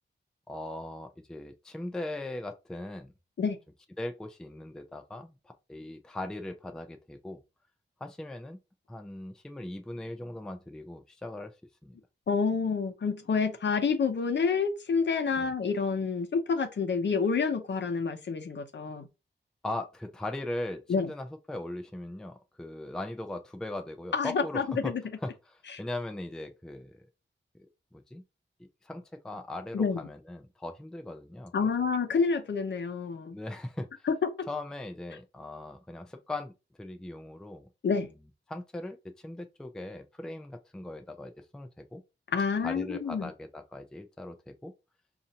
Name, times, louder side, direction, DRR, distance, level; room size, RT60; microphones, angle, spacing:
voice 1, 0.5-3.1 4.0-7.4 8.0-8.6 8.9-11.5 11.8-12.0 15.4-15.5 19.6-24.9 25.2-27.0 27.9-28.2 28.8-31.7 33.3-33.9 34.5-36.5 36.8-37.7 38.5-42.0 42.6-44.7, left 1 dB, 5° left, 0.4 m, -39 dB
voice 2, 12.3-19.1 20.9-21.1 24.1-25.0 29.7-30.0 31.5-33.3 34.1-34.5 37.8-38.1 42.3-43.3, left 5 dB, 60° left, 0.7 m, -28 dB
5.2 x 2.5 x 2.8 m
wide cardioid pair, 135°, 20 cm